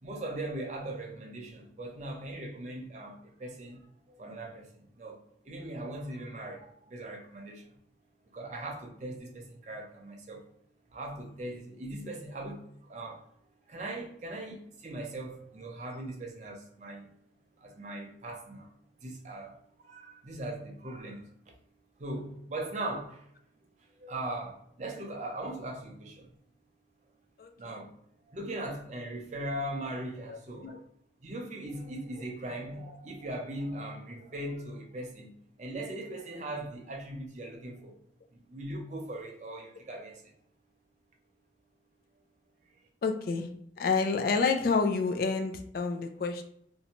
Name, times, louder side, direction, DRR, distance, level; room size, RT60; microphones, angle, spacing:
voice 1, 0.0-5.2 5.4-7.8 8.3-10.5 10.9-13.2 13.7-17.1 17.6-18.7 19.0-21.2 22.0-23.3 23.8-26.3 27.6-27.9 28.3-30.8 31.2-35.3 35.6-38.0 38.3-40.2, right 1 dB, 40° right, 0.5 m, -39 dB
voice 2, 30.3-30.8 32.2-32.3 43.0-43.5 43.8-46.4, left 4 dB, 50° left, 0.3 m, -29 dB
2.6 x 2.1 x 2.8 m
head